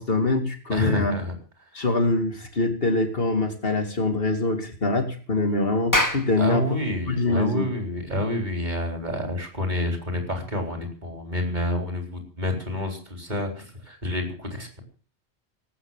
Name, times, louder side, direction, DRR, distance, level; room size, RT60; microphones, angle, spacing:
voice 1, 0.0-1.2 1.7-6.8 7.1-7.7, left 2 dB, 60° left, 6 dB, 2.7 m, -24 dB
voice 2, 0.7-1.3 6.4-14.8, left 1 dB, 45° right, 3 dB, 4.4 m, -28 dB
Clapping, 5.7-10.6, left 1 dB, 15° left, 2.0 m, -30 dB
18.0 x 9.0 x 7.4 m, 0.41 s
omnidirectional pair, 1.1 m